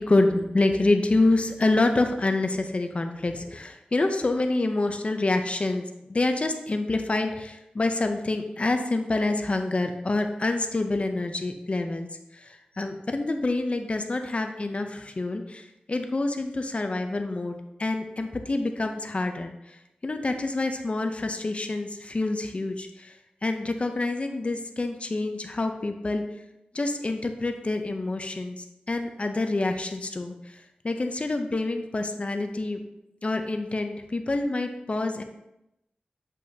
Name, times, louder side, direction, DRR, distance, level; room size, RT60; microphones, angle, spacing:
voice 1, 0.0-12.1 12.3-23.2 23.4-26.2 26.7-32.8 33.2-35.2, left 2 dB, 40° left, 6 dB, 0.5 m, -27 dB
8.2 x 5.3 x 2.7 m, 0.89 s
wide cardioid pair, 85°, 3 cm